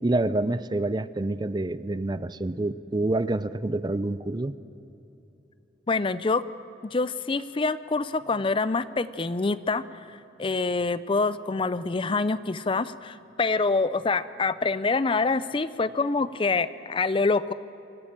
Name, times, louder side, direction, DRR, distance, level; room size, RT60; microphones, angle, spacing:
voice 1, 0.0-4.5, right 2 dB, 25° right, 15 dB, 0.5 m, -27 dB
voice 2, 5.9-6.5 6.8-17.5, left 3 dB, 30° left, 16 dB, 0.5 m, -26 dB
24.5 x 14.5 x 8.9 m, 3.0 s
head